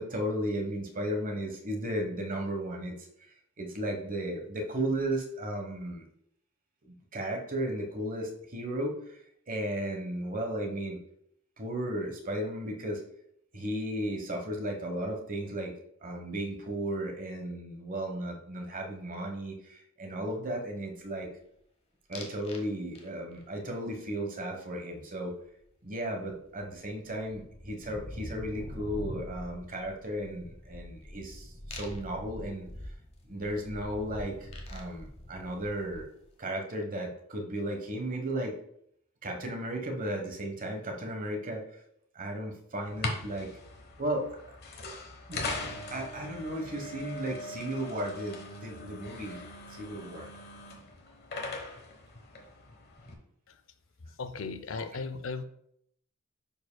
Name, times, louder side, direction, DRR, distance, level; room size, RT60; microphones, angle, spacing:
voice 1, 0.0-3.1 3.6-6.0 6.8-9.2 9.5-11.0 11.6-13.0 13.5-15.7 16.0-21.3 22.1-25.3 25.8-32.7 33.3-36.1 36.4-38.5 39.2-41.8 42.1-43.5 44.0-44.3 44.8-45.0 45.3-49.4 49.7-50.3, right 1 dB, 40° right, 1.2 m, -35 dB
sound 1, 22.1-22.6 23.0-23.4 25.9-26.0 26.2-36.3, left 1 dB, 30° left, 1.1 m, -44 dB
sound 2, 42.8-53.1, left 2 dB, 50° left, 1.2 m, -41 dB
voice 2, 54.1-55.4, left 4 dB, 65° left, 0.5 m, -37 dB
10.5 x 4.9 x 2.3 m
head